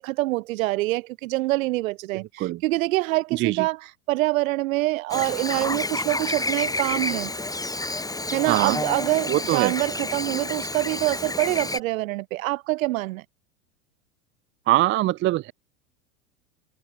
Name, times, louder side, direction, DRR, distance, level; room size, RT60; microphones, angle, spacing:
voice 1, 0.0-7.3 8.3-13.2, right 19 dB, 65° right, 4.0 m, -25 dB
voice 2, 3.3-3.6 8.5-8.8 9.3-9.7 14.7-15.5, right 16 dB, 30° right, 0.5 m, -22 dB
Chirp tweet / Buzz, 5.1-11.8, left 2 dB, 10° left, 6.9 m, -29 dB
hypercardioid pair, 100°, 44 cm